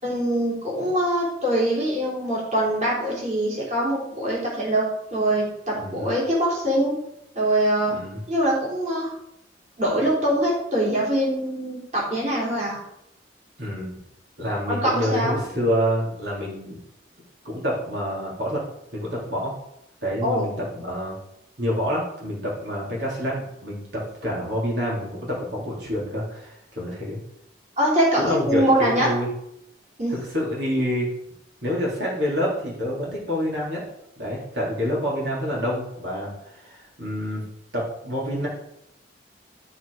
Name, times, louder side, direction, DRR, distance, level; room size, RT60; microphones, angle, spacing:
voice 1, 0.0-6.9 7.3-8.0 8.3-9.1 9.8-12.8 14.7-15.3 20.2-20.5 27.8-29.1 30.0-30.1, right 1 dB, 40° right, -5 dB, 3.2 m, -23 dB
voice 2, 5.8-6.1 7.9-8.2 13.6-14.0 14.4-16.8 17.4-18.6 18.9-19.5 20.0-21.1 21.6-27.2 28.2-29.3 30.1-31.1 31.6-33.8 34.2-37.4 37.7-38.5, equal, 80° right, -5 dB, 3.5 m, -27 dB
12.5 x 4.8 x 4.9 m, 0.81 s
head